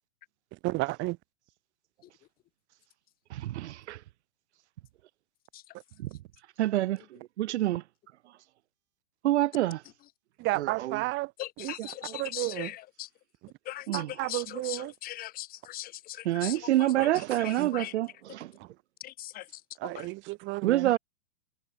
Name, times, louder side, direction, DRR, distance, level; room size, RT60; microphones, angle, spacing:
voice 1, 0.6-1.2 10.4-11.3 11.6-11.7 12.2-12.7 13.9-14.9 17.0-17.1 17.6-17.7 18.6-18.7 19.8-20.9, right 22 dB, 30° right, 1.4 m, -32 dB
voice 2, 3.3-4.0 6.0-6.1 6.6-7.8 9.2-9.8 10.6-11.0 13.9-14.1 16.2-18.5 20.6-21.0, right 14 dB, 55° right, 1.5 m, -27 dB
voice 3, 11.4-13.1 13.6-17.9 19.0-20.1, left 14 dB, 20° left, 1.4 m, -40 dB
hypercardioid pair, 135°, 41 cm